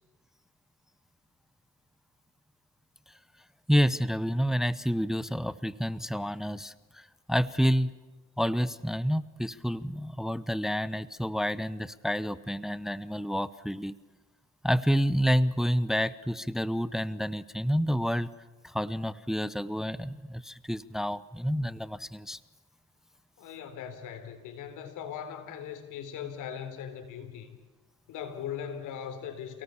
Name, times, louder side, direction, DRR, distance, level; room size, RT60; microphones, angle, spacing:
voice 1, 3.7-7.9 8.4-13.9 14.6-18.3 18.6-22.4, equal, ahead, 16 dB, 0.8 m, -29 dB
voice 2, 23.4-27.5 28.1-29.6, left 8 dB, 90° left, 9 dB, 3.8 m, -39 dB
29.5 x 18.5 x 7.1 m, 1.3 s
cardioid pair, 90°, 30 cm